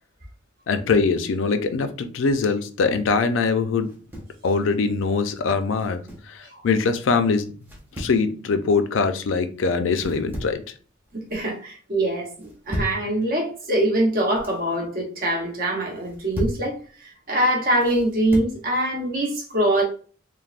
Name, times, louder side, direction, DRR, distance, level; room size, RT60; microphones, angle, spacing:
voice 1, 0.7-3.9 4.4-6.0 6.3-7.5 8.0-10.6, left 4 dB, 85° left, 0.4 m, -22 dB
sound 1, 3.8-4.4 5.7-6.3 7.6-8.2 9.9-10.7 11.0-11.5 12.4-13.0 14.1-14.6 15.9-16.7 17.8-18.6, equal, 10° right, 0.6 m, -34 dB
voice 2, 11.1-19.8, right 1 dB, 50° right, 0.8 m, -24 dB
3.2 x 2.1 x 2.4 m
head